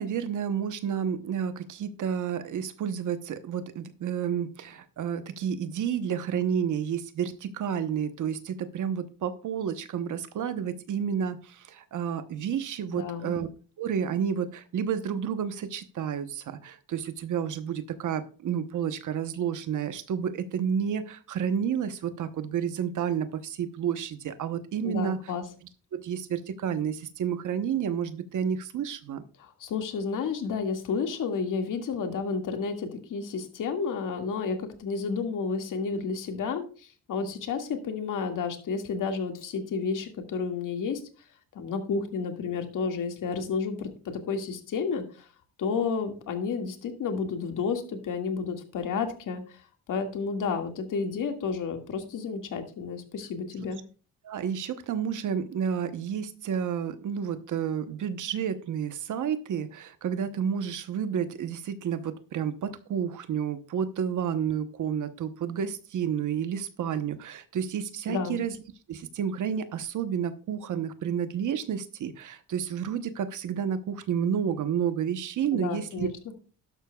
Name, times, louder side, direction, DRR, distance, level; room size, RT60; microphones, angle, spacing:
voice 1, 0.0-13.5 13.8-25.2 25.9-29.2 54.2-68.6 68.9-76.1, right 8 dB, 60° right, 10 dB, 1.0 m, -30 dB
voice 2, 12.9-13.3 24.8-25.4 29.4-41.0 41.5-45.3 45.6-49.6 49.9-53.8 68.1-68.4 75.5-76.1, left 5 dB, 60° left, 5 dB, 2.0 m, -31 dB
12.0 x 11.5 x 2.3 m, 0.38 s
cardioid pair, 120°, 35 cm